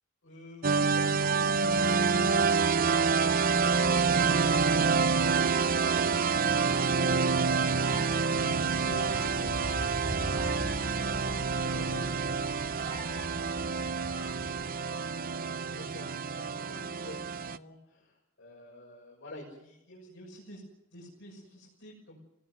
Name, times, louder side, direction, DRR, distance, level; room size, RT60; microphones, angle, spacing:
voice 1, 0.2-14.2 14.6-20.6 20.9-22.2, left 1 dB, 60° left, -3 dB, 6.5 m, -49 dB
sound 1, 0.6-17.6, right 5 dB, 45° right, 0.8 m, -27 dB
sound 2, 5.9-14.7, right 1 dB, 30° right, 7.1 m, -41 dB
24.5 x 18.5 x 8.0 m, 0.89 s
head